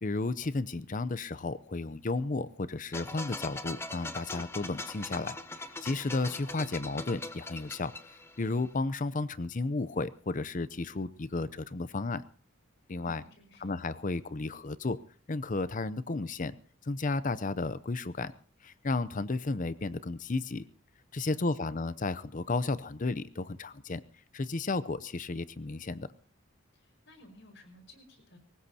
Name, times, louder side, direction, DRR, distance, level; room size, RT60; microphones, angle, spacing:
voice 1, 0.0-7.9 8.4-12.2 12.9-13.2 13.6-15.0 15.3-16.5 16.8-18.3 18.6-20.6 21.1-24.0 24.3-26.1, left 3 dB, 40° left, 15 dB, 0.6 m, -33 dB
sound 1, 2.9-8.7, left 2 dB, 10° left, 1.0 m, -41 dB
voice 2, 13.0-13.7 21.2-21.8 26.7-28.4, left 1 dB, 60° left, 6 dB, 5.3 m, -56 dB
22.5 x 19.0 x 2.8 m, 0.40 s
head